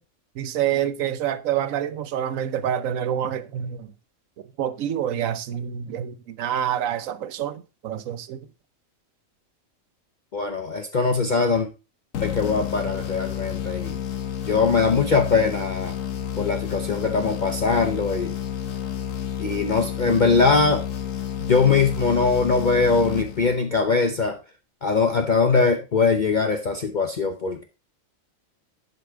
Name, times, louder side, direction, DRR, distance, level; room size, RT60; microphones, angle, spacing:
voice 1, 0.4-3.9 4.6-8.4, right 10 dB, 85° right, 1.2 m, -27 dB
voice 2, 10.3-11.7 12.2-14.0 14.4-16.0 16.4-18.3 19.4-20.8 21.4-24.4 24.8-27.6, left 4 dB, 45° left, 0.8 m, -21 dB
sound 1, 12.1-23.9, left 10 dB, 80° left, 1.3 m, -30 dB
11.0 x 5.2 x 3.4 m
omnidirectional pair, 1.3 m